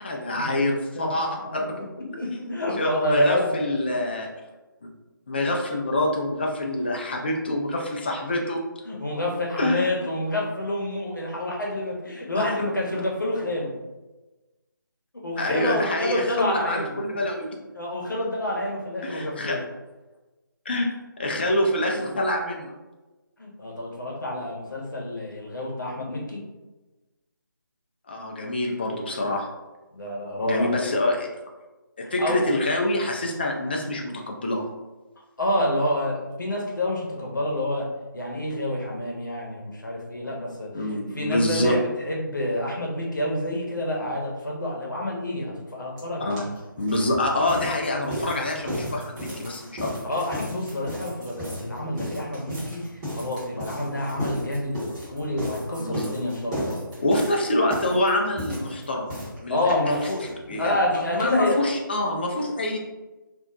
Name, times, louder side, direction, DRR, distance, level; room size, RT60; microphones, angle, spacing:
voice 1, 0.0-1.7 2.3-4.3 5.3-8.6 9.6-9.9 12.3-12.4 15.4-17.5 19.0-19.6 20.7-20.9 21.2-22.7 28.1-29.5 30.4-31.3 32.1-34.6 40.7-41.7 46.2-46.4 46.8-49.9 55.8-56.1 57.0-59.1 59.4-59.6 60.5-62.8, left 1 dB, 30° left, 0 dB, 0.4 m, -26 dB
voice 2, 1.7-3.5 8.8-13.7 15.2-17.2 17.7-19.6 23.4-26.4 29.9-30.7 32.2-32.4 35.4-37.9 38.1-40.7 41.1-46.5 50.0-56.8 59.5-60.3 60.6-61.6, left 1 dB, 60° left, -2 dB, 0.9 m, -28 dB
sound 1, 46.0-46.1 46.3-60.7 61.0-61.1 61.3-61.4 61.7-61.8, equal, 20° right, 0.9 m, -35 dB
2.5 x 2.1 x 3.7 m, 1.1 s
figure-of-eight pair, 150°, 12 cm